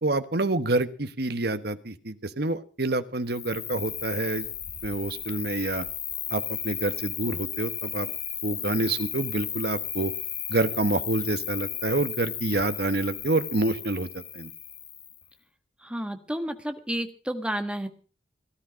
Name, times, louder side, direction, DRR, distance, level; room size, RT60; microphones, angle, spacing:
voice 1, 0.0-4.5 4.8-5.9 6.3-8.1 8.4-10.1 10.5-14.5, right 2 dB, 60° right, 11 dB, 1.2 m, -27 dB
Cricket, 3.3-15.2, left 9 dB, 30° left, 1.6 m, -35 dB
voice 2, 15.8-17.9, right 1 dB, 5° right, 7 dB, 1.4 m, -31 dB
18.0 x 12.5 x 5.1 m, 0.38 s
head